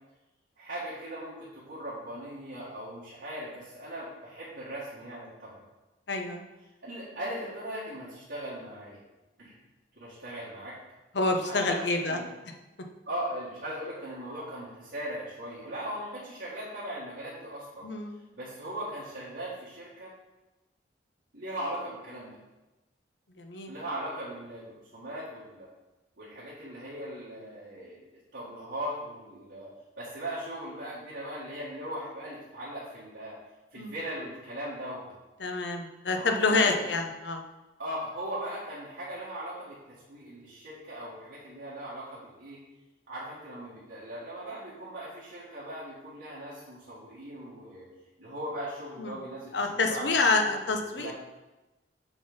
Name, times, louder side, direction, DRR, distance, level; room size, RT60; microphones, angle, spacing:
voice 1, 0.6-5.6 6.8-9.0 9.4-9.6 10.0-10.7 11.4-12.2 13.1-17.9 18.4-20.1 21.3-22.4 23.7-25.7 26.2-28.0 28.3-33.4 33.7-35.1 36.1-36.9 37.8-42.6 43.1-47.9 48.2-50.1 50.6-51.1, right 1 dB, 80° right, -10 dB, 1.9 m, -39 dB
voice 2, 6.1-6.5 11.1-12.2 17.8-18.2 23.4-23.7 33.8-33.9 35.4-37.4 49.0-49.2 49.5-51.1, left 3 dB, 70° left, 4 dB, 0.8 m, -27 dB
7.2 x 4.1 x 5.2 m, 1.1 s
head